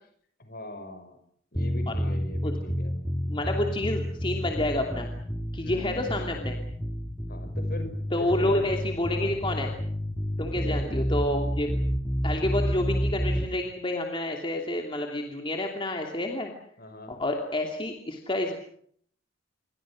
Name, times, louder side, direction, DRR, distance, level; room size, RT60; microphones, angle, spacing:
voice 1, 0.4-1.2 1.5-2.9 5.5-6.3 7.3-7.9 8.2-8.8 9.0-9.4 10.5-11.0 16.8-17.1, left 1 dB, 50° left, 8 dB, 6.1 m, -41 dB
sound 1, 1.5-13.5, equal, 5° left, 2.2 m, -29 dB
voice 2, 3.3-5.1 5.5-6.6 8.1-9.7 10.4-11.7 12.2-16.5 17.1-18.6, left 1 dB, 25° left, 2 dB, 2.8 m, -29 dB
28.5 x 24.0 x 6.4 m, 0.64 s
head